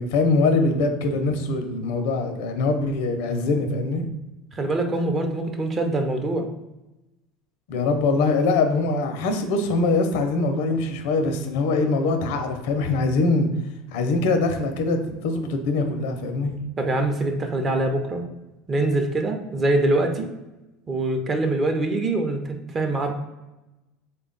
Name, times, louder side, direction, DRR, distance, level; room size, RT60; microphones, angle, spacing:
voice 1, 0.0-4.0 7.7-13.5 13.9-16.6, left 3 dB, 75° left, 6 dB, 0.6 m, -23 dB
voice 2, 4.5-6.5 16.8-18.2 18.7-20.3 20.9-23.1, right 2 dB, 30° right, 5 dB, 0.6 m, -24 dB
3.4 x 2.3 x 3.8 m, 1.0 s
supercardioid pair, 105°, 0 cm